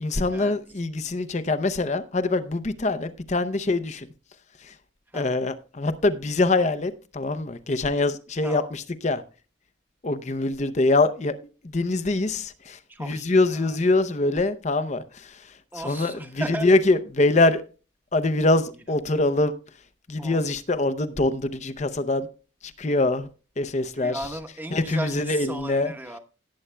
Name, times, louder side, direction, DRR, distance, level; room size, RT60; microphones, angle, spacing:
voice 1, 0.0-4.1 4.7-4.8 5.1-9.2 10.0-11.3 11.6-15.4 15.7-17.6 18.1-19.5 20.1-22.3 22.8-23.3 23.6-24.3 24.7-25.9, left 2 dB, 35° left, 0.6 m, -24 dB
voice 2, 12.9-13.8 15.7-16.7 20.2-20.4 24.0-26.2, right 1 dB, 10° right, 1.0 m, -36 dB
18.0 x 8.6 x 2.2 m
head